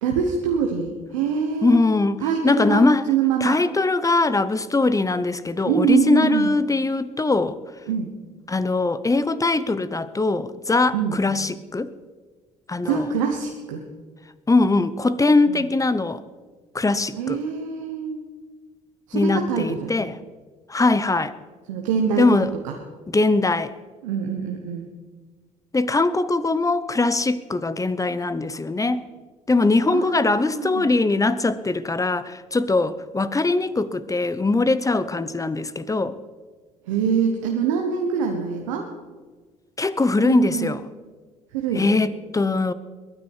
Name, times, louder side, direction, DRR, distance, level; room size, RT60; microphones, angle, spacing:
voice 1, 0.0-1.8 2.2-3.6 5.6-6.5 7.8-8.1 10.9-11.2 12.8-13.8 15.5-15.7 17.1-18.2 19.1-19.9 21.7-22.3 22.6-22.8 24.0-24.9 29.9-30.9 36.8-38.9 40.2-40.8 41.5-41.9, right 6 dB, 90° right, 1.1 m, -24 dB
voice 2, 1.6-3.0 3.4-7.6 8.5-11.9 12.7-13.0 14.5-16.2 16.7-17.4 19.1-20.1 20.7-21.3 22.2-22.5 23.1-23.7 25.7-29.0 29.5-36.1 39.8-40.8 41.7-42.7, left 3 dB, 20° left, 1.0 m, -21 dB
22.0 x 9.4 x 4.7 m
hypercardioid pair, 55°, 16 cm